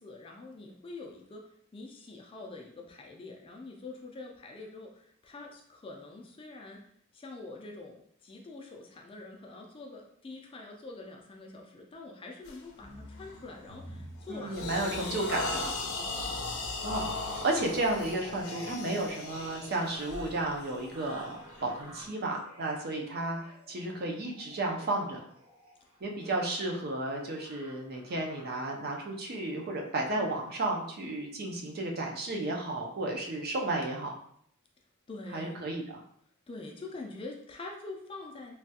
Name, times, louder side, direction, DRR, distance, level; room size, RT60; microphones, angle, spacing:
voice 1, 0.0-6.8 7.1-16.4 26.2-26.4 35.1-35.6 36.5-38.5, left 3 dB, 25° left, 1 dB, 0.4 m, -45 dB
sound 1, 12.4-12.7 13.2-13.5 13.9-22.0, left 3 dB, 85° left, 0.5 m, -38 dB
sound 2, 12.8-28.7 29.4-30.0 30.5-30.6, equal, 25° right, 0.9 m, -52 dB
voice 2, 14.3-15.8 16.8-17.1 17.4-25.3 26.0-34.2 35.3-36.0, right 2 dB, 50° right, 1 dB, 0.5 m, -33 dB
3.2 x 2.3 x 2.8 m, 0.67 s
head